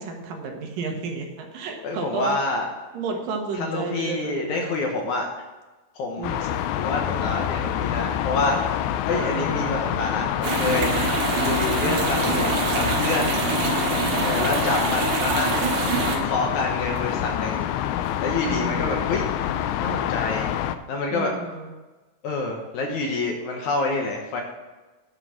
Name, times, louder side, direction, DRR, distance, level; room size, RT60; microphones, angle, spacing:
voice 1, 0.0-2.4 2.9-4.9 6.2-6.5 9.1-10.0 11.8-12.2 14.0-14.4 18.4-18.8 21.1-21.7, right 4 dB, 75° right, 2 dB, 3.1 m, -32 dB
voice 2, 1.8-2.7 3.5-5.4 6.0-6.4 6.8-10.9 11.4-13.4 14.2-15.8 16.1-17.7 18.2-19.2 19.8-20.5 20.9-21.3 22.2-24.4, left 3 dB, 65° left, 1 dB, 2.3 m, -27 dB
sound 1, 6.2-20.8, left 11 dB, 85° left, 1.6 m, -27 dB
sound 2, 10.4-16.2, right 4 dB, 60° right, 2.8 m, -25 dB
11.0 x 6.0 x 7.3 m, 1.2 s
omnidirectional pair, 4.0 m